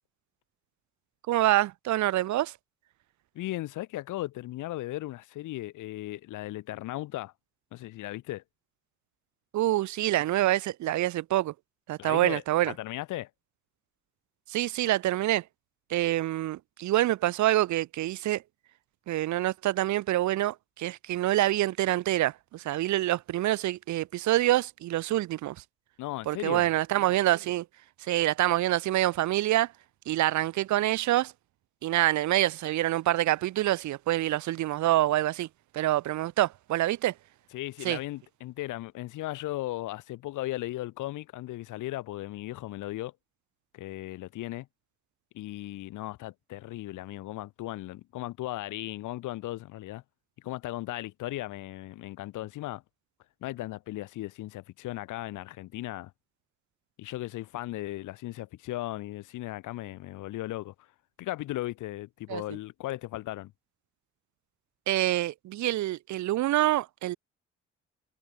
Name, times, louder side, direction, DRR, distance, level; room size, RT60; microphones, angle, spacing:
voice 1, 1.3-2.5 9.5-11.5 11.9-12.7 14.5-15.4 15.9-18.4 19.1-25.6 26.3-27.7 28.0-29.7 30.1-31.3 31.8-35.5 35.7-37.1 37.8-38.0 62.3-62.4 64.9-67.2, right 15 dB, 70° right, 0.8 m, -26 dB
voice 2, 3.3-7.3 7.7-8.4 12.0-13.3 26.0-26.7 37.5-43.1 43.7-44.7 45.3-50.0 50.4-52.8 53.4-56.1 57.0-60.7 61.2-63.5, left 16 dB, 90° left, 2.8 m, -36 dB
cardioid pair, 90°, 30 cm